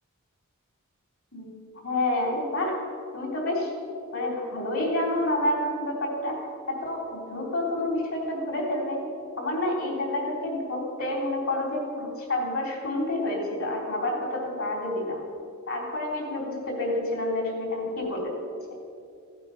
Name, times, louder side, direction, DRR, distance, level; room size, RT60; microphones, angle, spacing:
voice 1, 1.8-2.8 3.1-3.7 4.1-9.0 9.4-15.2 15.7-18.3, left 1 dB, 70° left, -1 dB, 3.5 m, -29 dB
16.0 x 8.2 x 5.8 m, 2.4 s
head